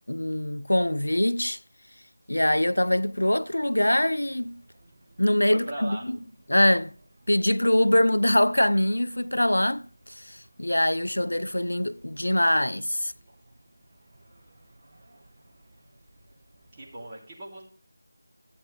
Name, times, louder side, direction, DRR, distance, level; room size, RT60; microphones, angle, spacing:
voice 1, 0.1-1.6 2.3-4.6 5.2-6.2 6.5-6.9 7.3-13.1, left 1 dB, 85° left, 0.4 m, -23 dB
sound 1, 2.3-17.0, right 1 dB, 45° right, 1.9 m, -59 dB
voice 2, 5.5-6.1 16.7-17.6, right 1 dB, 20° right, 2.7 m, -38 dB
13.0 x 8.7 x 3.3 m
figure-of-eight pair, 165°, 0 cm